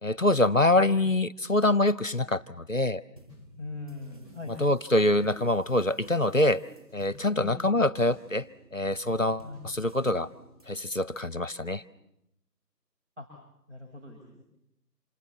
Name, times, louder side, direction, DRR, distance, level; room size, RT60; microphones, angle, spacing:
voice 1, 0.0-3.0 4.6-6.6 6.9-8.5 8.7-10.3 10.7-11.8, left 1 dB, 50° left, 18 dB, 0.9 m, -25 dB
sound 1, 3.2-10.8, equal, 15° right, 7.1 m, -52 dB
voice 2, 3.6-4.6 7.4-7.6 9.4-9.7 13.2-13.3 13.7-14.4, left 3 dB, 45° right, 1 dB, 5.7 m, -41 dB
27.5 x 26.5 x 7.2 m, 0.83 s
figure-of-eight pair, 175°, 50 cm